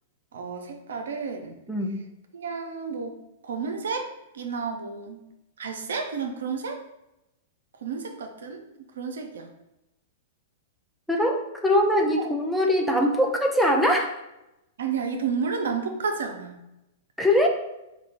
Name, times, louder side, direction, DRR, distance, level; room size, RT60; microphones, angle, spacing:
voice 1, 0.3-1.6 2.3-3.2 3.4-5.2 5.6-6.8 7.8-8.6 9.0-9.5 12.2-12.3 14.8-16.6, right 5 dB, 75° right, 5 dB, 0.4 m, -31 dB
voice 2, 1.7-2.0 11.1-14.1 17.2-17.5, left 1 dB, ahead, 0 dB, 0.5 m, -22 dB
4.4 x 2.1 x 2.5 m, 0.91 s
hypercardioid pair, 115°, 0 cm